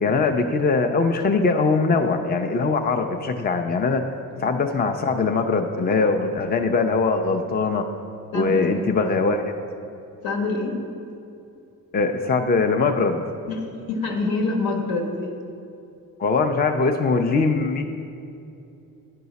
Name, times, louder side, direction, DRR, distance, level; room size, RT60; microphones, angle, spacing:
voice 1, 0.0-4.0 4.4-7.8 8.3-9.4 11.9-13.2 16.2-17.8, left 4 dB, 25° left, 5 dB, 0.5 m, -21 dB
voice 2, 10.2-10.7 13.5-15.3, left 3 dB, 70° left, 1 dB, 1.4 m, -26 dB
10.5 x 4.6 x 4.1 m, 2.6 s
supercardioid pair, 65°, 36 cm